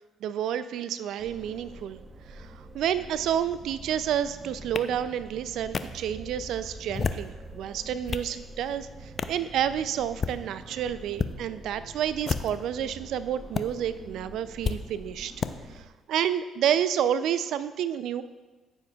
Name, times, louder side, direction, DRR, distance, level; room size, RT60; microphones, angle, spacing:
voice 1, 0.2-2.0 2.3-15.3 15.7-18.2, right 9 dB, 70° right, 14 dB, 0.3 m, -30 dB
sound 1, 1.2-15.8, right 2 dB, 35° right, 0.8 m, -45 dB
sound 2, 4.8-4.9 5.7-5.8 6.8-7.3 7.8-8.3 9.2-9.4 10.1-10.4 11.1-11.3 12.2-12.7 13.5-13.6 14.6-14.8 15.4-15.5, left 5 dB, 45° left, 0.5 m, -30 dB
14.0 x 7.2 x 2.3 m, 1.2 s
hypercardioid pair, 55°, 0 cm